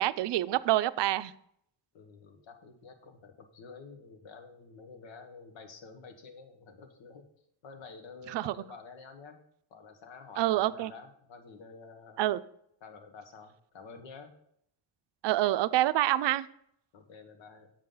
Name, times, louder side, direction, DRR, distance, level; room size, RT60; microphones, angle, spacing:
voice 1, 0.0-1.3 8.3-8.5 10.4-10.9 12.2-12.4 15.2-16.5, right 14 dB, 70° right, 14 dB, 0.5 m, -27 dB
voice 2, 1.9-7.3 7.6-9.4 9.7-12.3 12.8-14.3 16.9-17.7, left 4 dB, 80° left, 6 dB, 1.4 m, -50 dB
7.2 x 7.0 x 3.8 m, 0.70 s
cardioid pair, 130°, 45 cm